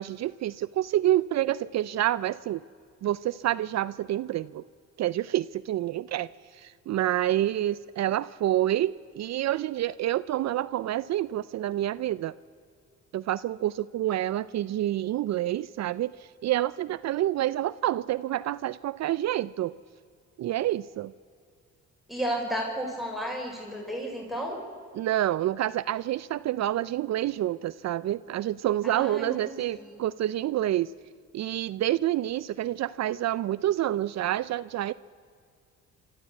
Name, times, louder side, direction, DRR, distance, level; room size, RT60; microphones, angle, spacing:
voice 1, 0.0-2.6 3.0-4.6 5.0-6.3 6.5-12.3 13.1-19.8 20.4-21.1 24.9-30.9 31.3-34.9, right 13 dB, 60° right, 16 dB, 0.5 m, -28 dB
voice 2, 22.1-24.6 28.8-30.0, equal, ahead, 0 dB, 4.9 m, -33 dB
26.5 x 13.5 x 8.3 m, 2.2 s
cardioid pair, 90°, 30 cm